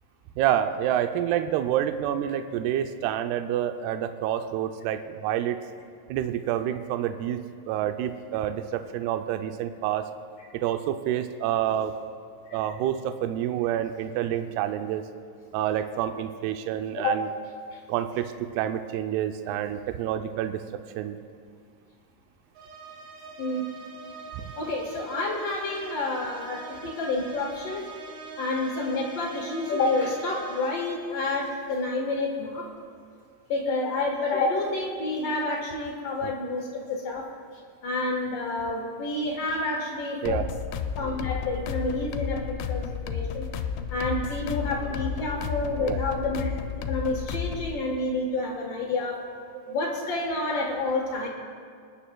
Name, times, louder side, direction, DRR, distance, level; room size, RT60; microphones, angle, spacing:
voice 1, 0.4-5.6 6.1-10.1 10.5-11.9 12.5-15.0 15.5-17.3 17.9-20.6 21.0-21.2 24.4-24.5 36.2-36.3 40.2-40.5 45.8-46.0 49.7-49.8, right 11 dB, 85° right, 8 dB, 2.5 m, -28 dB
sound 1, 22.6-31.1, right 4 dB, 65° right, 2.9 m, -43 dB
voice 2, 23.4-23.7 24.6-27.9 28.4-32.7 33.5-37.3 37.8-40.4 40.9-43.4 43.9-46.5 46.9-49.2 49.7-51.3, left 2 dB, 70° left, -1 dB, 1.5 m, -29 dB
sound 2, 40.3-47.8, left 7 dB, 85° left, 2.8 m, -32 dB
25.5 x 10.0 x 2.2 m, 2.2 s
omnidirectional pair, 4.8 m